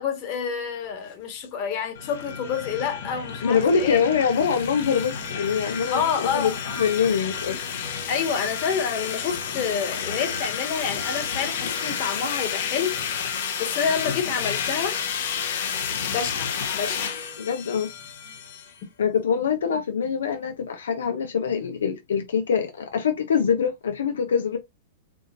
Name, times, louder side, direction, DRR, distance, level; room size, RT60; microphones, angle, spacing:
voice 1, 0.0-4.0 5.9-6.8 8.1-13.0 13.3-15.0 16.1-17.2, left 7 dB, 45° left, 1.5 m, -28 dB
sound 1, 1.9-18.7, left 7 dB, 70° left, 1.0 m, -31 dB
voice 2, 3.4-6.5 6.8-7.6 17.4-17.9 19.0-24.6, left 6 dB, 85° left, 0.6 m, -24 dB
4.8 x 2.5 x 2.5 m
hypercardioid pair, 130°, 0 cm